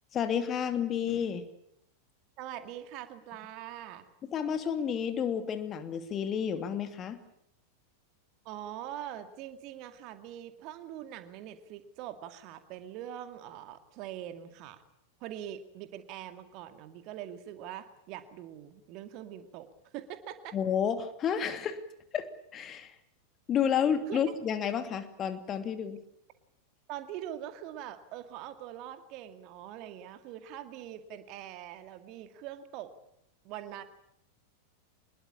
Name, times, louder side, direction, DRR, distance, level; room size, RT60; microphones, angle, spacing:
voice 1, 0.1-1.4 4.3-7.2 20.5-21.8 22.1-22.9 23.5-26.0, left 8 dB, 30° left, 9 dB, 2.7 m, -30 dB
voice 2, 2.4-4.0 8.4-14.8 15.2-19.7 19.9-20.6 24.1-24.2 26.9-32.9 33.4-33.8, right 11 dB, 40° right, 9 dB, 2.2 m, -43 dB
25.0 x 21.5 x 8.6 m, 0.76 s
figure-of-eight pair, 90°, 0 cm